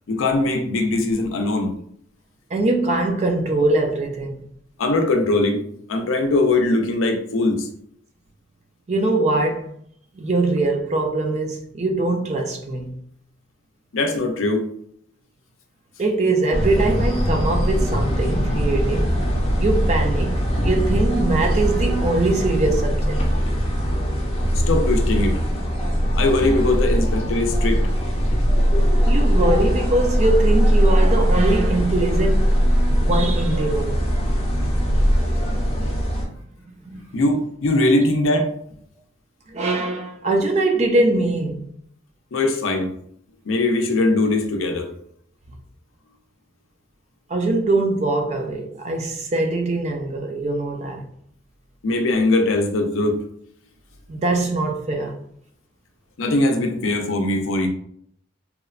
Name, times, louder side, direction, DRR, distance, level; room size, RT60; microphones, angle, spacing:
voice 1, 0.1-1.7 4.8-5.6 5.9-7.7 13.9-14.7 24.5-25.4 26.2-27.8 37.1-38.5 42.3-42.9 43.5-44.9 51.8-53.2 56.2-57.7, left 2 dB, 80° left, 0.5 m, -20 dB
voice 2, 2.5-4.3 8.9-9.7 10.1-13.0 16.0-19.2 19.6-23.2 29.1-32.6 32.9-34.0 36.8-37.2 39.5-41.7 47.3-51.1 54.1-55.2, right 2 dB, 35° right, 0.3 m, -22 dB
sound 1, 16.5-36.2, equal, 30° left, 0.5 m, -20 dB
2.9 x 2.1 x 2.4 m
head